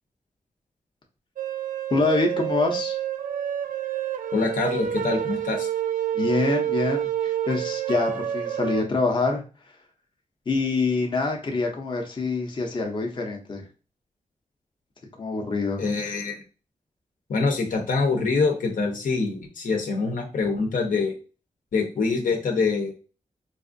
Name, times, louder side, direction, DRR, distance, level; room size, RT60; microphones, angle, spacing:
sound 1, 1.4-8.8, right 10 dB, 80° right, 0.4 m, -28 dB
voice 1, 1.9-3.0 6.1-9.4 10.5-13.6 15.2-15.8, left 3 dB, 35° left, 1 dB, 0.6 m, -25 dB
voice 2, 4.3-5.7 15.8-16.4 17.3-21.1 21.7-22.9, left 4 dB, 80° left, 2 dB, 0.8 m, -25 dB
4.0 x 2.5 x 2.5 m, 0.34 s
wide cardioid pair, 120°, 14 cm